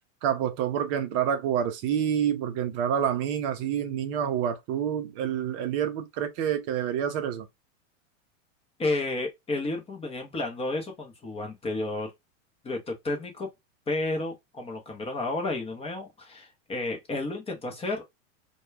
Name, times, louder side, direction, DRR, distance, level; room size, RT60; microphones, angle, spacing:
voice 1, 0.2-7.5, right 9 dB, 45° right, 0.6 m, -28 dB
voice 2, 8.8-12.1 12.6-13.5 13.9-18.0, left 2 dB, 15° left, 0.6 m, -31 dB
2.2 x 2.2 x 3.1 m
hypercardioid pair, 115°, 39 cm